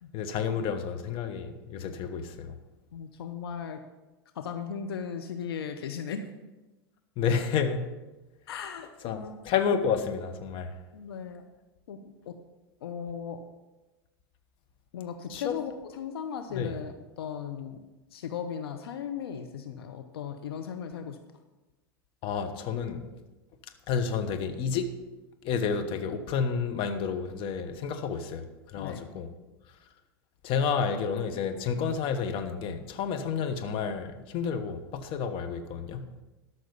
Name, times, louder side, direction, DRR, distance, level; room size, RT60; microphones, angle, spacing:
voice 1, 0.1-2.5 7.2-7.9 9.0-10.8 15.3-15.5 16.5-16.8 22.2-23.1 23.9-24.9 25.4-29.3 30.4-36.0, left 6 dB, 45° left, 7 dB, 1.2 m, -30 dB
voice 2, 2.9-3.8 4.3-6.3 8.5-9.4 10.9-11.5 11.9-12.3 12.8-13.5 14.9-17.8 18.1-21.2 28.7-29.1, left 7 dB, 75° left, 7 dB, 0.8 m, -37 dB
13.0 x 6.1 x 5.4 m, 1.1 s
hypercardioid pair, 100°, 13 cm